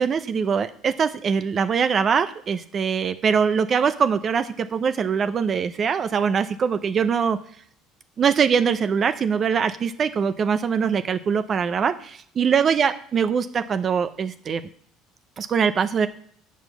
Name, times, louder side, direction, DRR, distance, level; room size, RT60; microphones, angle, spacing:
voice 1, 0.0-7.4 8.2-14.6 15.4-16.1, right 6 dB, 40° right, 11 dB, 0.6 m, -22 dB
7.2 x 4.4 x 6.7 m, 0.64 s
hypercardioid pair, 80°, 0 cm